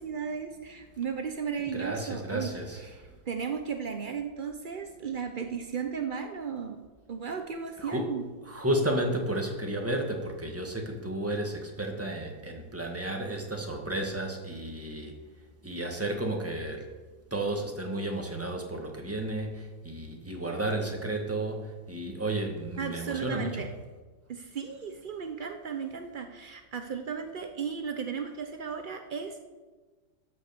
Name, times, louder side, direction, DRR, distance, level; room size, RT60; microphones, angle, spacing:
voice 1, 0.0-2.5 2.9-3.0 3.3-6.8 7.1-8.2 22.8-23.7 24.3-29.4, right 6 dB, 80° right, 5 dB, 0.4 m, -35 dB
voice 2, 1.7-3.1 7.8-8.2 8.4-15.2 15.6-16.9 17.3-23.7, right 1 dB, 10° right, 1 dB, 1.3 m, -32 dB
13.0 x 6.3 x 6.8 m, 1.3 s
omnidirectional pair, 2.0 m